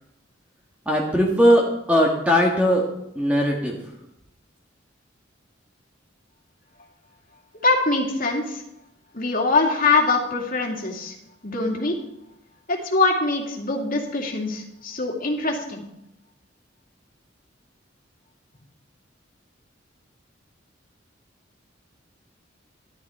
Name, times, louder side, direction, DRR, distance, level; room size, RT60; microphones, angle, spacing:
voice 1, 0.8-2.8 3.1-3.8, equal, 5° right, -1 dB, 1.5 m, -19 dB
voice 2, 7.6-8.6 9.1-11.2 11.4-11.9 12.7-15.9, left 3 dB, 45° left, 1 dB, 2.5 m, -23 dB
12.5 x 12.0 x 4.4 m, 0.83 s
head